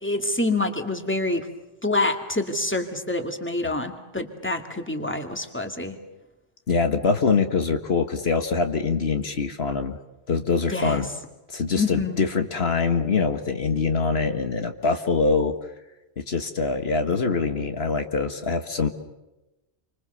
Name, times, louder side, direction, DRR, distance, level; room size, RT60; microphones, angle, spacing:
voice 1, 0.0-1.5 1.8-6.0 10.7-11.0 11.8-12.2, left 2 dB, 10° left, 5 dB, 2.4 m, -26 dB
voice 2, 6.7-10.0 10.3-11.1 11.5-15.5 16.2-18.9, left 4 dB, 70° left, 7 dB, 1.8 m, -24 dB
28.0 x 25.5 x 6.9 m, 1.0 s
omnidirectional pair, 1.1 m